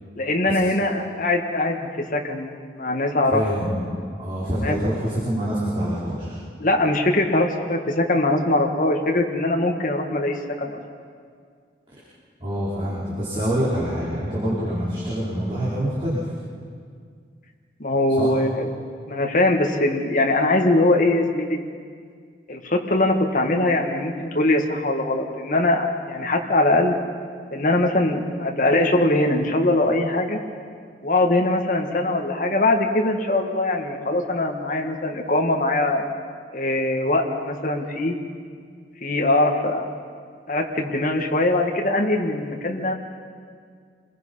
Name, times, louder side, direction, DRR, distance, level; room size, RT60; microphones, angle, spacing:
voice 1, 0.2-3.4 4.6-4.8 6.6-10.8 17.8-18.7 19.1-21.6 22.5-27.0 27.5-30.4 31.0-36.1 36.5-38.2 39.0-39.8 40.5-42.9, left 2 dB, 45° left, 2 dB, 1.9 m, -22 dB
voice 2, 3.3-3.9 4.2-6.3 12.4-16.2 18.2-18.3, equal, 30° right, -9 dB, 5.1 m, -26 dB
28.5 x 21.5 x 5.7 m, 2.1 s
head